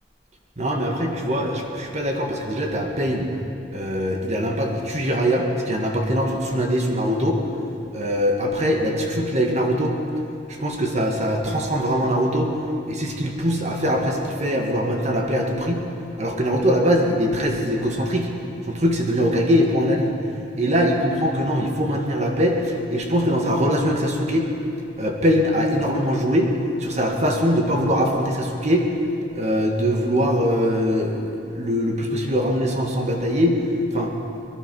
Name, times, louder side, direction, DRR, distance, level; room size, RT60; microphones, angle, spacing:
voice 1, 0.6-3.3 3.7-7.4 7.9-10.0 10.5-12.5 12.9-15.8 16.2-18.3 18.7-20.1 20.6-24.5 25.0-26.5 26.8-28.9 29.3-33.6 33.9-34.1, equal, 40° right, 1 dB, 1.8 m, -22 dB
22.5 x 11.0 x 5.5 m, 2.6 s
head